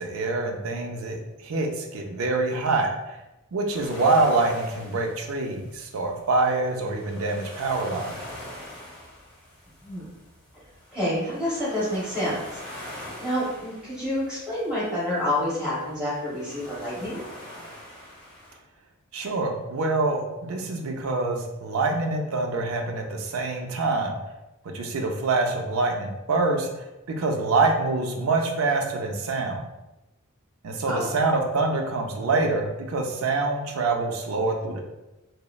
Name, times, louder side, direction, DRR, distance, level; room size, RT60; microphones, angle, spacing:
voice 1, 0.0-3.2 3.5-8.2 19.1-24.2 24.6-26.8 27.2-29.6 30.6-34.8, right 3 dB, 75° right, 2 dB, 0.4 m, -25 dB
sound 1, 3.7-18.6, left 1 dB, 25° left, 1.0 m, -44 dB
voice 2, 10.9-12.4 12.8-17.2 30.9-31.1, left 1 dB, 5° right, -10 dB, 1.3 m, -28 dB
2.9 x 2.0 x 2.3 m, 0.99 s
head